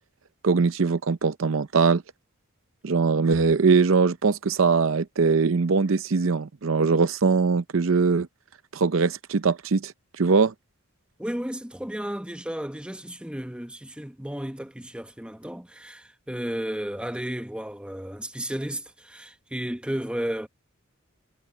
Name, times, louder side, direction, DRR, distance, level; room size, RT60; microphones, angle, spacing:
voice 1, 0.4-2.0 2.8-8.3 8.7-9.9 10.2-10.5, right 4 dB, 65° right, 0.6 m, -21 dB
voice 2, 11.2-20.5, equal, 5° right, 1.2 m, -33 dB
head